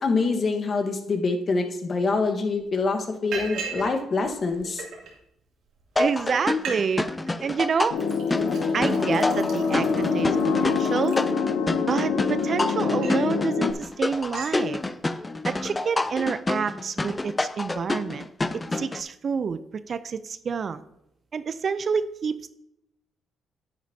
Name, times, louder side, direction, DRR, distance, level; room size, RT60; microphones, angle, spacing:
voice 1, 0.0-4.8, left 3 dB, 45° left, 4 dB, 1.3 m, -25 dB
Liquid, 2.1-2.2 2.6-2.8 3.3-3.9 4.2-5.1 5.8-5.9 6.2-6.3 6.5-6.8 7.1-7.5 8.0-11.8 12.3-13.3 13.7-13.9 14.1-14.6, right 5 dB, 80° right, 2.6 m, -38 dB
sound 1, 6.0-19.0, left 2 dB, 20° left, 0.4 m, -28 dB
voice 2, 6.0-7.0 7.4-8.0 8.7-10.4 10.6-11.2 11.8-14.8 15.4-18.3 18.5-19.6 19.9-20.8 21.3-22.5, right 6 dB, 50° right, 13 dB, 0.5 m, -28 dB
sound 2, 7.9-13.7, left 5 dB, 85° left, 0.7 m, -25 dB
10.5 x 9.1 x 2.8 m, 0.81 s
cardioid pair, 90°, 0 cm